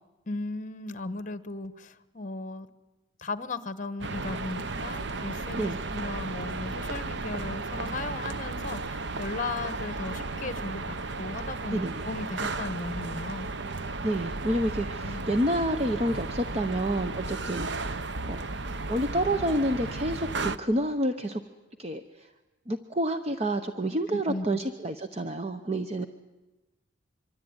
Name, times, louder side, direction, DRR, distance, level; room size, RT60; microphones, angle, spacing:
voice 1, 0.3-2.7 3.2-13.5 15.0-15.3 24.1-24.6, left 2 dB, 40° left, 13 dB, 1.2 m, -36 dB
sound 1, 4.0-20.6, right 3 dB, 60° right, 0.8 m, -34 dB
voice 2, 5.6-5.9 11.7-12.0 14.0-18.5 18.9-21.4 21.8-22.0 22.7-26.1, right 1 dB, 30° right, 8 dB, 0.9 m, -29 dB
25.0 x 24.5 x 9.7 m, 1.1 s
head